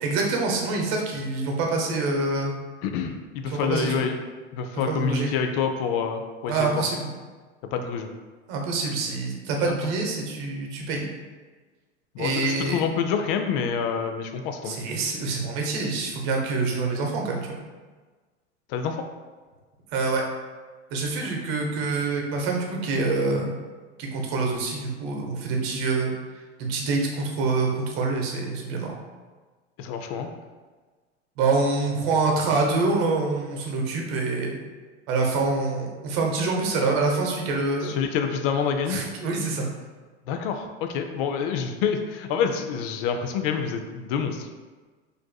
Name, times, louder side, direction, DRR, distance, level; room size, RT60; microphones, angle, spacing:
voice 1, 0.0-2.5 3.5-4.1 4.7-5.3 6.5-7.1 8.5-11.1 12.2-12.8 14.6-17.6 19.9-20.2 20.9-23.5 24.0-26.1 26.6-28.9 31.4-34.6 35.1-37.9 38.9-39.7, right 3 dB, 60° right, 1 dB, 0.9 m, -26 dB
voice 2, 2.8-4.2 4.5-6.8 7.7-8.1 9.7-9.8 12.1-14.8 18.7-19.0 29.8-30.3 37.8-39.0 40.3-44.5, left 6 dB, 55° left, 6 dB, 0.4 m, -27 dB
4.5 x 2.6 x 2.2 m, 1.4 s
hypercardioid pair, 85°, 35 cm